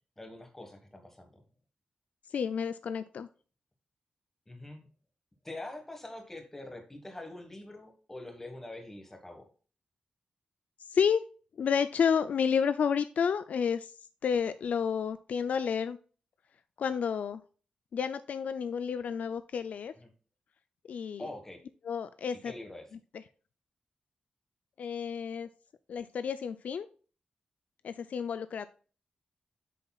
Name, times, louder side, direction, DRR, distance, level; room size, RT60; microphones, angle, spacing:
voice 1, 0.2-1.4 4.5-4.9 5.4-9.5 20.0-20.1 21.2-21.6 22.4-22.9, left 2 dB, 15° left, 4 dB, 1.5 m, -44 dB
voice 2, 2.3-3.3 10.9-11.2 11.6-13.9 14.2-16.0 16.8-17.4 17.9-19.9 20.9-21.3 21.8-22.5 24.8-25.5 25.9-26.9 27.8-28.7, left 7 dB, 70° left, 12 dB, 0.4 m, -30 dB
8.4 x 6.7 x 2.3 m, 0.39 s
wide cardioid pair, 175°, 3 cm